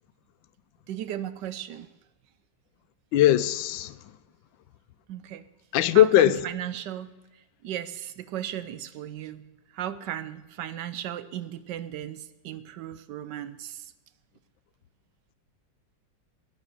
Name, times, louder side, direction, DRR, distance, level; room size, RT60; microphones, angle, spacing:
voice 1, 0.9-1.9 5.1-5.4 5.9-7.1 7.6-9.5 9.7-13.9, right 11 dB, 70° right, 1.2 m, -35 dB
voice 2, 3.1-3.9 5.7-6.4, left 12 dB, 85° left, 1.3 m, -19 dB
10.5 x 8.8 x 7.5 m
omnidirectional pair, 2.1 m